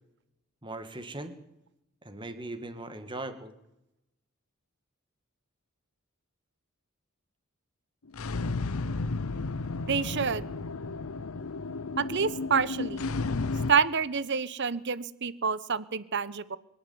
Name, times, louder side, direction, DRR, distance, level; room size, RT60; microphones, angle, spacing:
voice 1, 0.6-1.4 2.0-3.5, right 2 dB, 20° right, 9 dB, 2.1 m, -39 dB
sound 1, 8.1-13.7, left 3 dB, 70° left, 0.8 m, -33 dB
voice 2, 9.9-10.4 12.0-13.0 13.7-16.6, right 6 dB, 50° right, 17 dB, 1.0 m, -28 dB
24.0 x 11.5 x 9.7 m, 0.85 s
head